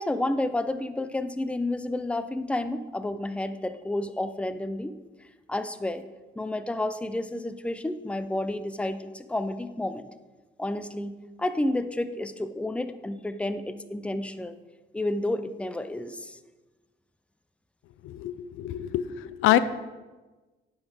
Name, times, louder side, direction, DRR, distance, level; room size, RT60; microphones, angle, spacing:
voice 1, 0.0-6.0 6.4-10.1 10.6-14.6 14.9-16.4, left 1 dB, 5° left, 11 dB, 0.5 m, -31 dB
voice 2, 18.0-19.6, left 13 dB, 85° left, 14 dB, 0.5 m, -25 dB
9.3 x 6.5 x 5.0 m, 1.2 s
cardioid pair, 90°, 20 cm